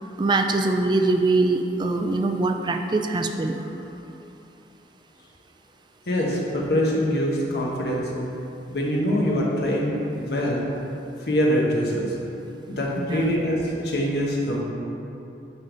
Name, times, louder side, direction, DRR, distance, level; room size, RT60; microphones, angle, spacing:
voice 1, 0.2-3.6 13.0-13.4, right 2 dB, 25° right, 6 dB, 0.4 m, -23 dB
voice 2, 6.1-8.1 8.7-10.7 11.2-12.1 12.7-14.6, equal, 65° left, -3 dB, 1.1 m, -24 dB
10.5 x 3.5 x 3.9 m, 2.9 s
head